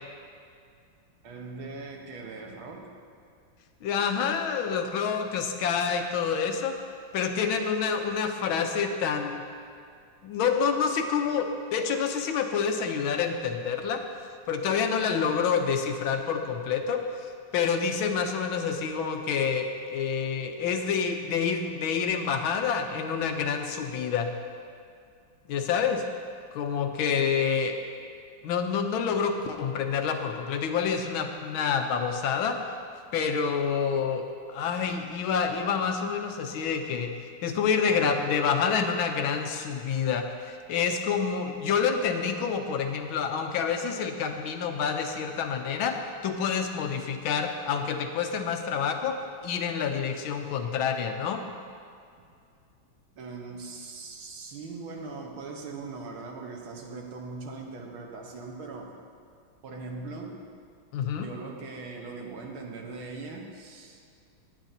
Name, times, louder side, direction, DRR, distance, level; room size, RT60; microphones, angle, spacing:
voice 1, 1.2-2.9 37.8-38.3 53.2-58.9 59.6-60.5 61.1-64.0, right 3 dB, 80° right, 1 dB, 1.9 m, -40 dB
voice 2, 3.8-6.7 7.1-9.4 10.2-14.0 14.5-17.3 17.5-24.3 25.5-26.0 26.5-27.8 28.4-32.6 33.1-37.1 37.4-46.0 46.2-49.2 49.4-51.4 60.9-61.3, left 6 dB, 75° left, 5 dB, 1.5 m, -28 dB
18.5 x 9.0 x 2.8 m, 2.3 s
omnidirectional pair, 2.3 m